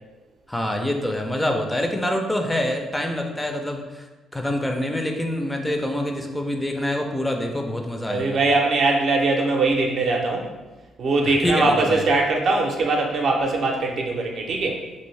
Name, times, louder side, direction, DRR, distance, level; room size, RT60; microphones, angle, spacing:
voice 1, 0.5-4.1 4.3-8.4 11.2-12.1, left 1 dB, 10° left, 3 dB, 0.3 m, -26 dB
voice 2, 8.1-10.4 11.0-14.8, right 3 dB, 60° right, 1 dB, 0.5 m, -21 dB
2.7 x 2.6 x 3.1 m, 1.2 s
cardioid pair, 90°, 0 cm